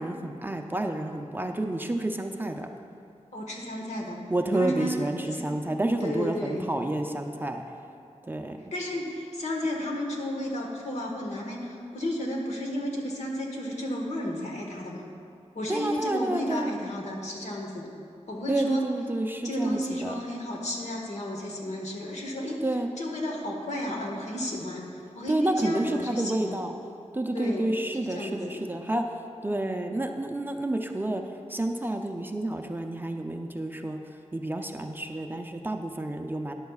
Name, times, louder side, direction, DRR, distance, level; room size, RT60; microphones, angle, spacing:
voice 1, 0.0-2.7 4.3-7.6 8.2-8.6 15.7-16.8 18.5-20.1 22.6-23.0 25.3-26.7 27.1-29.0 29.4-31.2 31.5-34.0 34.3-36.5, right 1 dB, 15° right, 4 dB, 0.5 m, -29 dB
voice 2, 3.3-4.2 4.5-5.0 5.3-5.5 6.0-6.7 8.7-15.0 15.5-17.9 18.3-18.9 19.4-22.6 23.0-24.8 25.1-26.6 27.3-27.7 28.1-28.7, left 1 dB, 70° left, 0 dB, 1.5 m, -32 dB
13.5 x 10.5 x 2.4 m, 2.5 s
wide cardioid pair, 120°, 12 cm